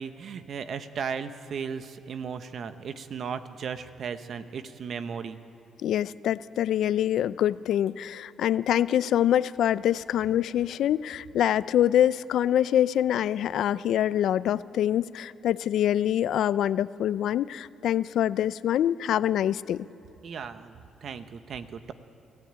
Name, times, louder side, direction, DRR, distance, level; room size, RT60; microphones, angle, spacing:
voice 1, 0.0-5.4 20.2-21.9, right 6 dB, 60° right, 10 dB, 1.1 m, -36 dB
voice 2, 5.8-19.9, left 11 dB, 75° left, 17 dB, 0.5 m, -25 dB
24.5 x 16.0 x 8.9 m, 2.7 s
cardioid pair, 90°, 0 cm